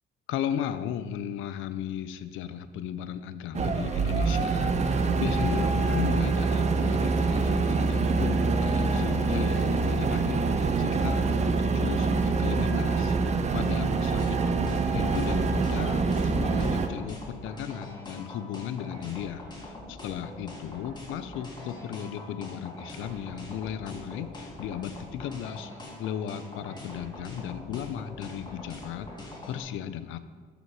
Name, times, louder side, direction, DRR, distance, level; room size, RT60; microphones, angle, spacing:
voice 1, 0.3-30.2, left 9 dB, 85° left, 12 dB, 0.4 m, -36 dB
sound 1, 3.5-16.9, right 4 dB, 35° right, 0.5 m, -25 dB
sound 2, 14.2-29.6, left 1 dB, 20° left, 1.9 m, -43 dB
6.6 x 5.1 x 4.7 m, 1.5 s
cardioid pair, 90°, 20 cm